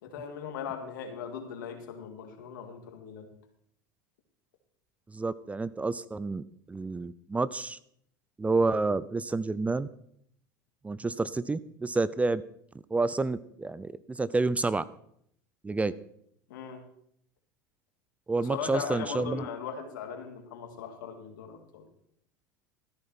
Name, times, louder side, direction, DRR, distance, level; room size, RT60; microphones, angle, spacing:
voice 1, 0.0-3.3 16.5-16.8 18.4-21.9, left 7 dB, 80° left, 5 dB, 2.2 m, -39 dB
voice 2, 5.1-7.8 8.4-9.9 10.8-12.4 12.9-14.8 15.6-15.9 18.3-19.4, right 3 dB, 15° right, 18 dB, 0.5 m, -29 dB
14.0 x 9.9 x 4.4 m, 0.70 s
hypercardioid pair, 95°, 10 cm